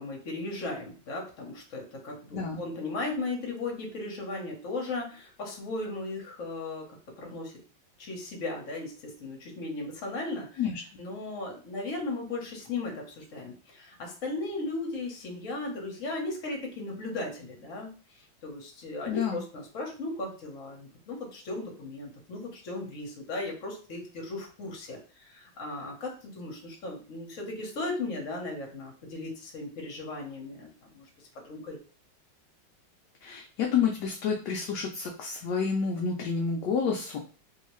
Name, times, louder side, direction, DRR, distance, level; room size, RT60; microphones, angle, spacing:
voice 1, 0.0-7.5 8.0-10.6 11.0-31.0 31.4-31.8, left 2 dB, 50° left, 0 dB, 1.1 m, -36 dB
voice 2, 19.1-19.4 33.2-37.2, left 6 dB, 70° left, 0 dB, 1.0 m, -29 dB
3.0 x 2.8 x 3.1 m, 0.38 s
omnidirectional pair, 2.2 m